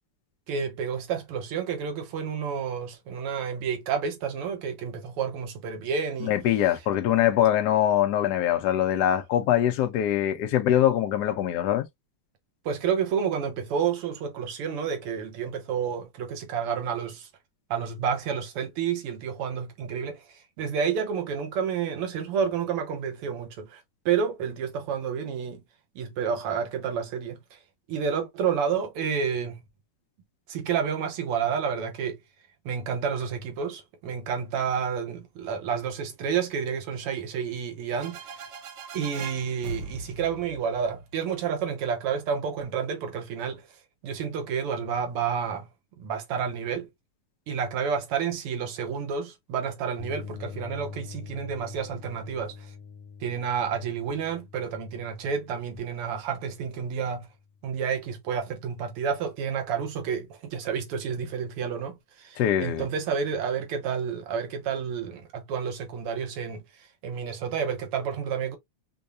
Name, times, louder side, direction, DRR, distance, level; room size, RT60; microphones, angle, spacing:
voice 1, 0.5-6.4 12.7-17.3 17.7-25.6 26.0-27.6 27.9-29.6 30.5-32.2 32.7-38.5 38.9-43.6 44.0-45.7 46.0-46.9 47.5-52.5 53.2-57.3 57.6-66.6 67.0-68.6, right 7 dB, 85° right, 2.0 m, -30 dB
voice 2, 6.2-11.9 62.4-62.9, left 11 dB, 70° left, 1.0 m, -23 dB
sound 1, 38.0-41.6, right 3 dB, 65° right, 1.2 m, -40 dB
sound 2, 50.0-57.7, left 5 dB, 90° left, 1.6 m, -44 dB
5.3 x 2.2 x 2.5 m
omnidirectional pair, 2.4 m